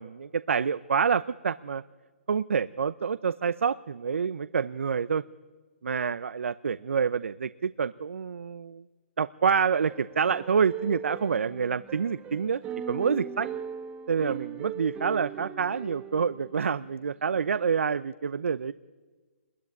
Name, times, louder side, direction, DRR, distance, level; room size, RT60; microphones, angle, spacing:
voice 1, 0.0-1.8 2.3-5.2 5.8-8.8 9.2-12.6 12.9-13.5 14.1-18.7, right 6 dB, 75° right, 16 dB, 0.7 m, -27 dB
sound 1, 9.8-16.8 17.3-17.7, right 7 dB, 20° right, 1.3 m, -40 dB
24.5 x 21.0 x 9.6 m, 1.4 s
hypercardioid pair, 145°, 7 cm